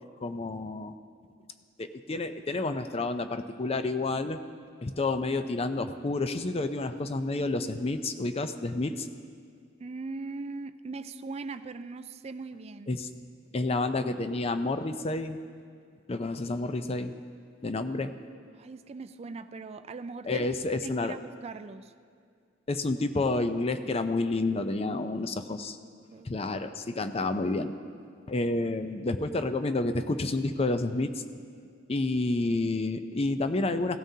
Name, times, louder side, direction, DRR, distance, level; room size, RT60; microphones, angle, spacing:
voice 1, 0.2-0.9 1.8-4.4 4.8-9.1 12.9-13.1 13.5-15.4 16.1-17.1 17.6-18.1 20.3-21.2 22.7-25.8 26.2-27.7 28.3-31.2 31.9-34.0, left 2 dB, 30° left, 9 dB, 0.5 m, -29 dB
voice 2, 9.8-12.9 18.5-20.5 20.8-21.9 25.8-26.5, right 3 dB, 35° right, 10 dB, 0.4 m, -40 dB
17.0 x 12.5 x 2.8 m, 2.2 s
head